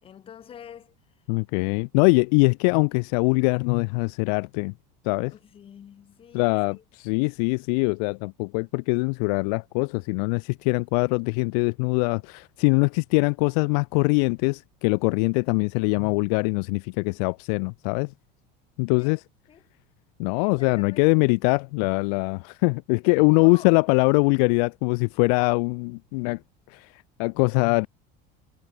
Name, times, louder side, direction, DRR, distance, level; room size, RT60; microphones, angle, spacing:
voice 1, 0.0-0.9 5.3-6.8 19.0-19.2 19.5-19.6 20.4-21.3 23.3-23.8, left 9 dB, 25° left, 4.4 m, -46 dB
voice 2, 1.3-4.7 5.0-5.3 6.3-18.1 18.8-19.2 20.2-26.4 26.7-26.9 27.2-27.9, left 35 dB, 70° left, 0.5 m, -23 dB
cardioid pair, 165°, 21 cm